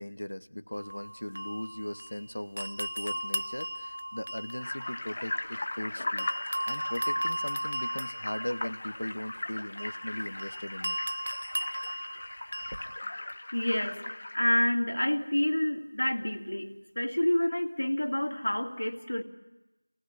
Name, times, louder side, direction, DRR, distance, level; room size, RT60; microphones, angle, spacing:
voice 1, 0.0-6.3 6.7-11.0, left 1 dB, 80° left, 12 dB, 1.0 m, -38 dB
sound 1, 0.7-2.2 2.6-5.8 6.2-13.0, right 1 dB, 55° right, 0.8 m, -36 dB
sound 2, 4.6-14.4, left 2 dB, 25° left, 0.7 m, -38 dB
voice 2, 13.5-19.2, left 1 dB, 65° left, 3 dB, 2.4 m, -28 dB
28.0 x 18.5 x 7.5 m, 1.1 s
figure-of-eight pair, 180°, 0 cm